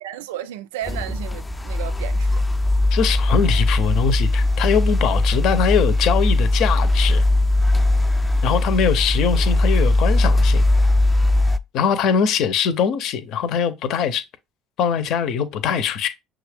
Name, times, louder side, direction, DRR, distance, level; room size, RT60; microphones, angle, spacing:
voice 1, 0.0-2.5, right 11 dB, 85° right, 0.4 m, -33 dB
sound 1, 0.8-11.6, left 2 dB, 15° left, 0.5 m, -19 dB
voice 2, 2.9-7.2 8.4-10.7 11.7-14.2 14.8-16.1, left 7 dB, 65° left, 0.7 m, -22 dB
6.0 x 2.4 x 3.4 m
hypercardioid pair, 70°, 0 cm